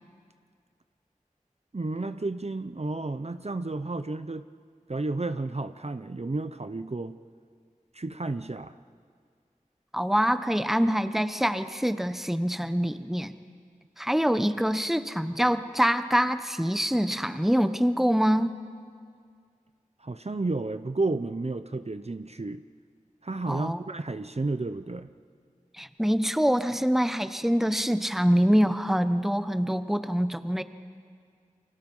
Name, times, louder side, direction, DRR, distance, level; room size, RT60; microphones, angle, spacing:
voice 1, 1.7-4.5 4.9-7.2 7.9-8.8 20.0-22.6 23.2-25.1, right 2 dB, 50° right, 10 dB, 0.7 m, -32 dB
voice 2, 9.9-13.3 14.0-18.6 23.5-23.8 25.8-30.6, equal, ahead, 11 dB, 1.0 m, -25 dB
30.0 x 25.0 x 5.5 m, 2.1 s
wide cardioid pair, 40°, 14 cm